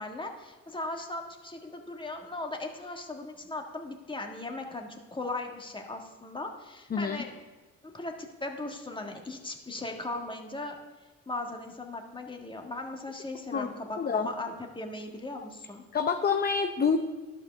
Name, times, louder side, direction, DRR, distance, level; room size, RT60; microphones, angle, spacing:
voice 1, 0.0-7.4 7.8-10.8 11.3-15.9, left 2 dB, 15° left, 3 dB, 1.6 m, -38 dB
voice 2, 14.0-14.3 15.9-17.0, left 6 dB, 30° left, 6 dB, 0.7 m, -27 dB
11.5 x 5.7 x 6.5 m, 1.2 s
cardioid pair, 90°, 30 cm